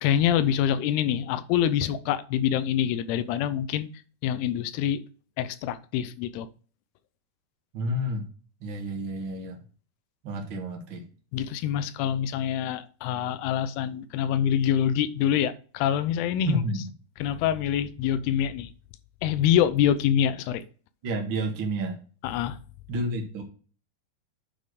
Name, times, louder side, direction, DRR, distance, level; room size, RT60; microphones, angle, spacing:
voice 1, 0.0-3.9 4.2-5.0 5.4-6.5 11.3-16.6 17.2-18.7 19.2-20.6 22.2-22.6, left 10 dB, 85° left, 2.7 m, -25 dB
voice 2, 7.7-8.3 8.6-9.6 10.2-11.0 16.4-16.8 21.0-22.0 22.9-23.4, right 1 dB, 50° right, 1.6 m, -30 dB
9.7 x 4.3 x 4.8 m
omnidirectional pair, 4.5 m